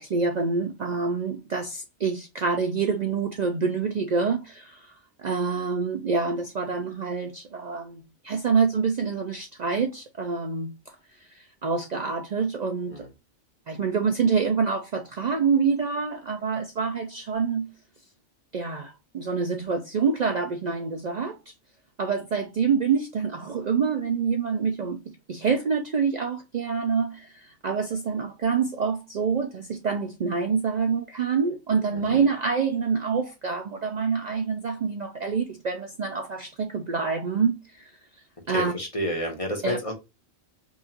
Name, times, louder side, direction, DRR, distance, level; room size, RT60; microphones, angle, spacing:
voice 1, 0.0-10.8 11.3-13.1 13.7-17.7 18.5-21.4 22.0-37.9 38.5-38.7 39.6-39.8, right 5 dB, 80° right, 0.3 m, -26 dB
voice 2, 38.5-39.9, equal, 25° left, 1.1 m, -30 dB
5.3 x 2.5 x 2.8 m
omnidirectional pair, 1.4 m